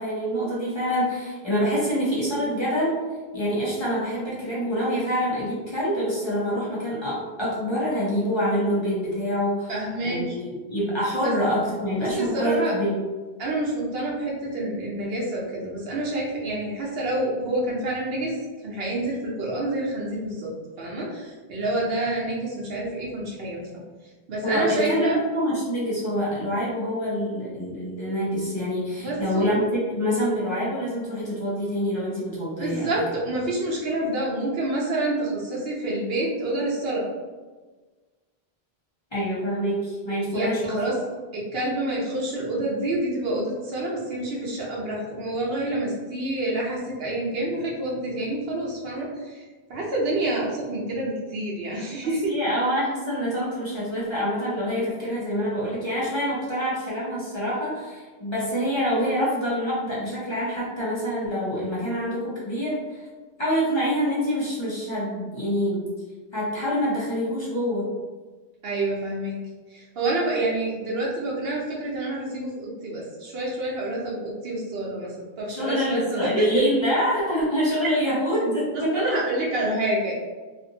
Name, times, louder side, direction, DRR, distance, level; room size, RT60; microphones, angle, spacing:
voice 1, 0.0-3.0 3.3-9.7 10.0-12.9 24.4-32.9 39.1-40.8 52.3-63.1 63.4-65.8 66.3-67.9 75.5-79.1, equal, 30° left, -9 dB, 0.8 m, -26 dB
voice 2, 9.7-10.4 11.2-11.3 12.0-12.7 13.4-18.3 18.6-20.5 20.8-23.7 24.3-25.2 29.0-29.5 32.6-37.1 40.3-41.0 41.3-49.4 49.7-52.3 68.6-69.4 69.7-76.6 78.9-80.1, right 1 dB, 70° right, -4 dB, 0.9 m, -28 dB
2.6 x 2.5 x 2.7 m, 1.3 s
omnidirectional pair, 1.1 m